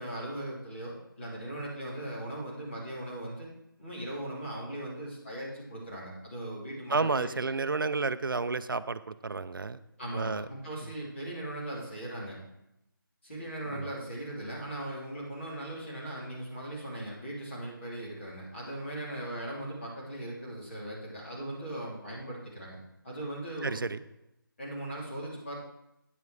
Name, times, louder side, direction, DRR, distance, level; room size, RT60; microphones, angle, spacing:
voice 1, 0.0-3.5 3.8-7.5 10.0-12.4 13.2-22.8 23.0-23.8 24.6-25.5, right 1 dB, 30° left, -5 dB, 3.0 m, -39 dB
voice 2, 6.9-9.8 10.1-10.5 13.7-13.9 23.6-24.0, right 4 dB, 65° right, 14 dB, 0.5 m, -31 dB
9.4 x 7.2 x 4.7 m, 0.84 s
figure-of-eight pair, 180°, 12 cm